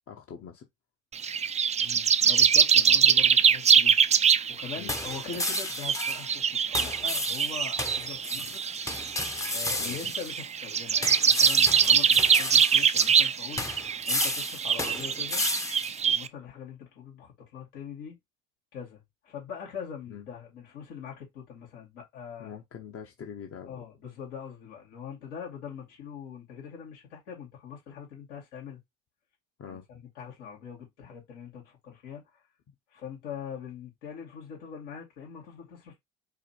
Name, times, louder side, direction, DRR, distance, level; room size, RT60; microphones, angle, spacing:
voice 1, 0.1-0.7 4.8-4.9 8.4-8.5 9.8-10.1 20.1-20.3 22.4-23.8 29.6-29.9, left 8 dB, 40° left, 0.9 m, -43 dB
sound 1, 1.1-16.3, right 7 dB, 20° right, 0.4 m, -24 dB
voice 2, 1.8-4.0 4.5-8.6 9.5-15.5 16.0-18.2 18.7-22.5 23.7-28.8 29.7-32.4 32.9-36.0, left 7 dB, 85° left, 2.5 m, -42 dB
sound 2, 4.9-6.3 6.7-10.4 11.0-13.3 13.6-16.0, left 2 dB, 10° left, 0.7 m, -33 dB
4.7 x 2.3 x 4.4 m
hypercardioid pair, 80°, 36 cm